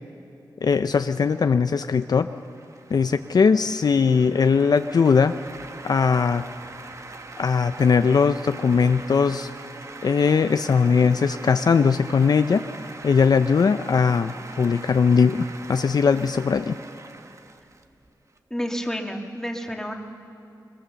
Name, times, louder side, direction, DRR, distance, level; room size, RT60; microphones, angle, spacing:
voice 1, 0.6-2.3 2.9-5.3 5.8-6.4 7.4-9.5 10.0-12.6 13.0-16.8, left 5 dB, 60° left, 9 dB, 0.5 m, -20 dB
sound 1, 1.7-18.4, right 3 dB, 40° right, 1.1 m, -42 dB
voice 2, 18.5-19.9, equal, 5° left, 2 dB, 1.9 m, -30 dB
22.0 x 21.5 x 7.0 m, 2.7 s
wide cardioid pair, 115°, 8 cm